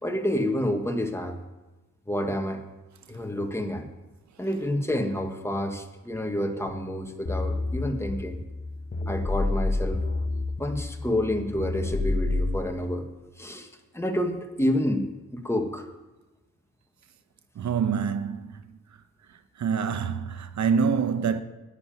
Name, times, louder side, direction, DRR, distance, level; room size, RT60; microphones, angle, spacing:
voice 1, 0.0-1.4 2.1-2.6 3.1-3.9 4.4-8.4 9.1-10.0 10.6-13.1 13.4-13.7 13.9-15.0 15.3-15.9, left 1 dB, 10° left, 1.5 m, -28 dB
sound 1, 7.3-12.6, left 2 dB, 30° left, 0.9 m, -29 dB
voice 2, 17.6-18.6 19.6-21.4, right 6 dB, 70° right, 0.8 m, -26 dB
9.9 x 9.8 x 8.9 m
wide cardioid pair, 110°, 29 cm